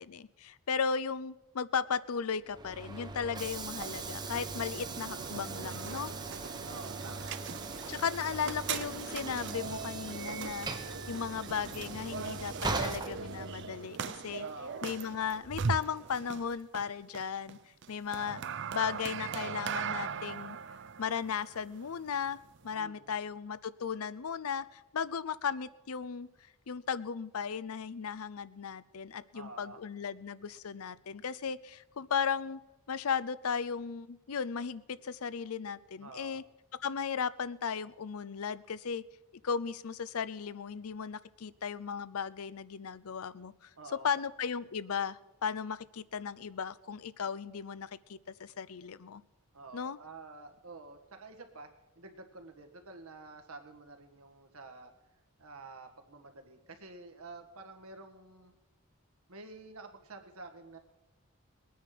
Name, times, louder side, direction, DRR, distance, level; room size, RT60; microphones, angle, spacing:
voice 1, 0.0-6.1 7.9-14.5 14.8-17.6 17.9-18.4 18.7-20.6 21.0-22.4 22.6-26.3 26.7-32.6 32.9-36.4 36.8-39.0 39.4-43.7 44.0-49.2 49.7-50.0, left 6 dB, 80° left, 17 dB, 0.6 m, -36 dB
Train / Sliding door, 2.4-13.8, right 3 dB, 20° right, 0.9 m, -40 dB
sound 1, 3.7-22.7, right 6 dB, 50° right, 0.5 m, -40 dB
voice 2, 6.6-7.3 14.4-14.9 22.7-23.2 29.3-29.8 36.0-36.4 43.8-44.1 49.5-51.7 51.9-54.9 55.4-58.5 59.3-60.8, right 3 dB, 80° right, 6 dB, 1.7 m, -49 dB
21.0 x 9.4 x 6.0 m, 1.0 s
head